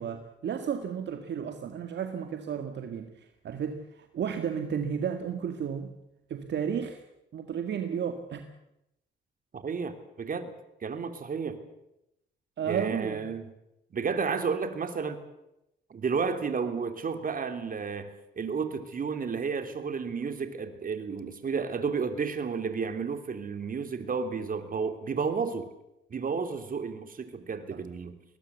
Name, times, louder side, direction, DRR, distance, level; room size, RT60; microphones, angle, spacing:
voice 1, 0.0-5.9 6.3-7.0 7.3-8.5 12.6-13.3 27.7-27.8, right 7 dB, 60° right, 6 dB, 2.0 m, -33 dB
voice 2, 9.5-10.5 10.8-11.6 12.6-13.5 13.9-15.2 15.9-25.7 26.1-28.2, right 5 dB, 45° right, 8 dB, 3.2 m, -32 dB
21.5 x 19.5 x 8.3 m, 0.87 s
cardioid pair, 90°, 20 cm